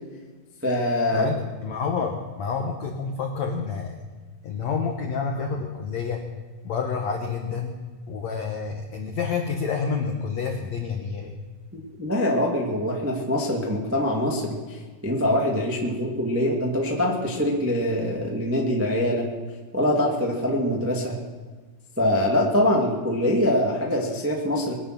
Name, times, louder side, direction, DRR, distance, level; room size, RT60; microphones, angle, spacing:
voice 1, 0.6-1.3 11.7-14.8 15.0-19.2 19.7-21.2 22.0-24.7, left 1 dB, 15° right, -2 dB, 0.5 m, -24 dB
voice 2, 1.1-4.0 4.4-6.3 6.6-11.3, left 5 dB, 80° left, 3 dB, 1.5 m, -29 dB
23.5 x 9.3 x 6.1 m, 1.4 s
omnidirectional pair, 4.9 m